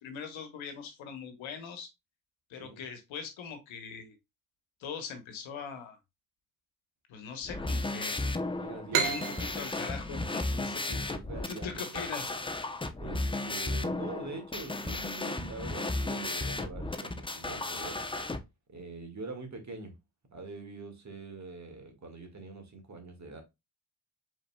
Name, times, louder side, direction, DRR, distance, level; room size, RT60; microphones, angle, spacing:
voice 1, 0.0-1.9 2.5-4.1 4.8-6.0 7.1-8.3 8.9-11.2 11.5-12.3, left 6 dB, 75° left, 1.2 m, -41 dB
sound 1, 7.4-18.4, left 2 dB, 10° left, 0.7 m, -34 dB
voice 2, 8.6-9.2 10.5-12.1 13.0-18.0 18.7-19.9 20.3-23.4, right 3 dB, 35° right, 1.9 m, -44 dB
sound 2, 8.9-12.3, right 6 dB, 85° right, 1.1 m, -34 dB
4.9 x 4.0 x 2.2 m
supercardioid pair, 50°, 47 cm